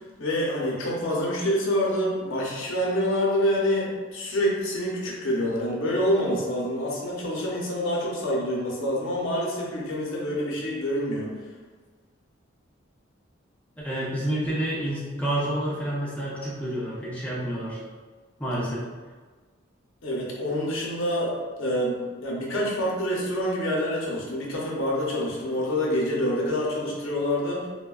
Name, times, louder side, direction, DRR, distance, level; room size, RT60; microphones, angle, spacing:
voice 1, 0.2-11.3 20.0-21.3 21.6-27.6, equal, 80° left, -4 dB, 0.7 m, -26 dB
voice 2, 13.8-17.8 18.4-18.8, right 1 dB, 5° left, -7 dB, 0.5 m, -29 dB
3.3 x 2.1 x 2.3 m, 1.4 s
head